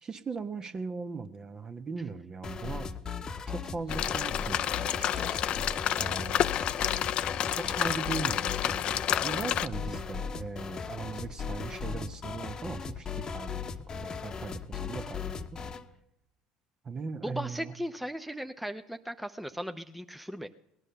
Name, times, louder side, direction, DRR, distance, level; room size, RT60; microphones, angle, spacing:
voice 1, 0.0-2.9 3.4-5.6 6.0-6.5 7.5-13.7 14.0-15.6 16.8-17.7, right 4 dB, 35° right, 9 dB, 1.2 m, -39 dB
sound 1, 2.4-15.9, left 5 dB, 35° left, 1.1 m, -38 dB
sound 2, 3.9-9.7, left 11 dB, 50° left, 0.6 m, -30 dB
voice 2, 17.2-20.5, equal, 5° right, 8 dB, 0.8 m, -37 dB
18.5 x 11.0 x 6.8 m, 0.84 s
hypercardioid pair, 75°, 2 cm